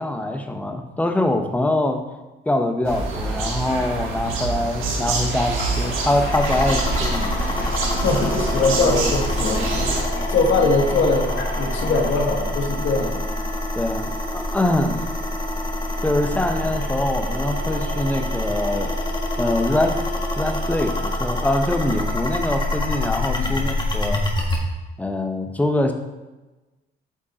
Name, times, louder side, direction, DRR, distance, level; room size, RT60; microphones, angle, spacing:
voice 1, 0.0-2.0 2.5-7.3 13.7-15.0 16.0-19.0 19.4-20.0 20.4-24.2 25.0-25.9, left 1 dB, 5° left, 5 dB, 0.9 m, -23 dB
sound 1, 2.8-10.0, right 3 dB, 85° right, 1.4 m, -26 dB
Toilet flush, 5.3-12.3, left 3 dB, 50° left, 1.5 m, -33 dB
sound 2, 6.3-24.6, left 1 dB, 25° left, 1.6 m, -26 dB
voice 2, 7.7-13.2 23.4-23.6, left 3 dB, 75° left, 1 dB, 1.5 m, -22 dB
8.7 x 5.1 x 4.3 m, 1.1 s
cardioid pair, 90°, 20 cm